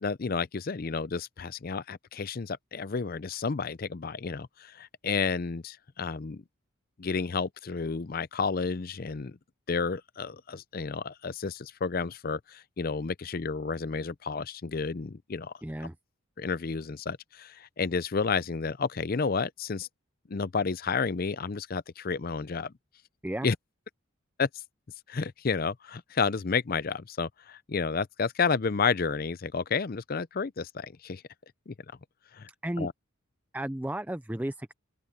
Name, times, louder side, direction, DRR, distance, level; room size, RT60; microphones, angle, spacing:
voice 1, 0.0-6.4 7.0-9.4 9.7-15.5 16.4-19.9 20.3-22.7 23.4-23.6 24.4-24.5 25.1-31.2 31.7-31.8 32.3-32.5 32.8-32.9, left 5 dB, 45° left, 0.5 m, -31 dB
voice 2, 15.6-15.9 23.2-23.5 32.6-32.9 33.5-34.7, right 1 dB, 10° right, 0.5 m, -33 dB
open air
head